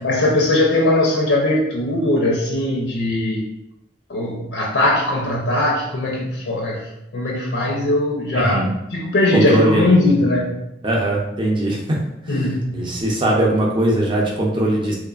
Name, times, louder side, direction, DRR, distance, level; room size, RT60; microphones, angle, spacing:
voice 1, 0.0-3.5 4.1-6.9 7.1-8.6 8.9-10.6 12.3-12.9, left 1 dB, 85° left, -2 dB, 0.5 m, -19 dB
voice 2, 8.3-8.7 9.3-9.9 10.8-12.5 12.7-15.0, right 1 dB, 30° right, -2 dB, 0.6 m, -20 dB
3.1 x 2.1 x 2.3 m, 0.85 s
head